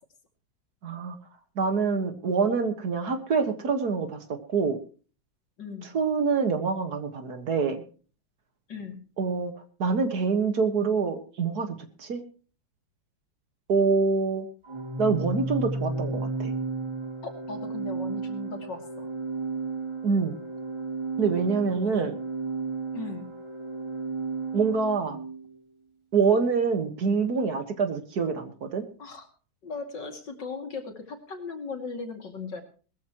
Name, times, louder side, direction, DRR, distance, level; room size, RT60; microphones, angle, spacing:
voice 1, 0.8-1.2 1.6-4.2 4.5-4.8 5.9-7.8 9.2-9.5 9.8-11.7 12.0-12.2 13.7-14.5 15.0-16.5 20.0-20.3 21.2-22.1 24.5-25.2 26.1-28.8, right 5 dB, 55° right, 8 dB, 2.0 m, -25 dB
voice 2, 5.6-5.9 8.7-9.0 17.2-19.1 21.8-22.1 22.9-23.3 29.0-29.3 29.6-32.6, left 4 dB, 65° left, 5 dB, 3.0 m, -38 dB
Organ, 14.7-25.4, right 3 dB, 15° right, 2.6 m, -33 dB
20.0 x 14.0 x 3.0 m, 0.38 s
omnidirectional pair, 2.1 m